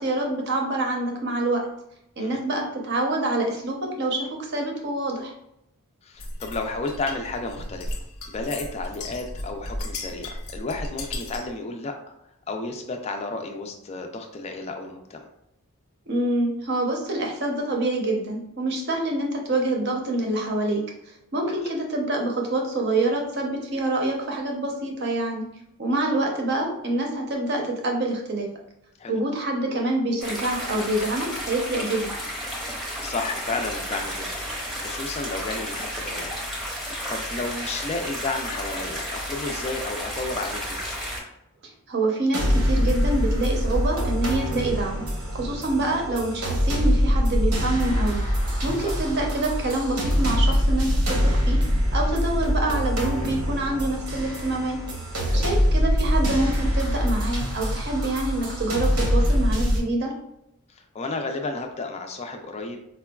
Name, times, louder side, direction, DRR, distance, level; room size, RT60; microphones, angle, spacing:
voice 1, 0.0-1.7 2.2-5.3 16.1-20.8 21.3-25.5 25.8-28.5 29.1-32.1 41.9-45.0 45.3-48.2 48.6-51.6 51.9-54.8 55.3-60.2, right 2 dB, 50° right, 1 dB, 0.6 m, -26 dB
voice 2, 6.0-8.0 8.3-11.9 12.5-15.3 21.5-21.6 29.0-29.2 32.8-34.4 34.8-36.3 37.1-40.8 48.8-49.0 55.3-55.5 60.7-62.8, left 3 dB, 30° left, 4 dB, 0.3 m, -32 dB
sound 1, 6.2-11.6, left 1 dB, 80° left, 0.6 m, -35 dB
sound 2, 30.2-41.2, equal, ahead, 0.7 m, -32 dB
sound 3, 42.3-59.8, equal, 90° right, 0.9 m, -24 dB
4.4 x 2.2 x 2.2 m, 0.81 s
head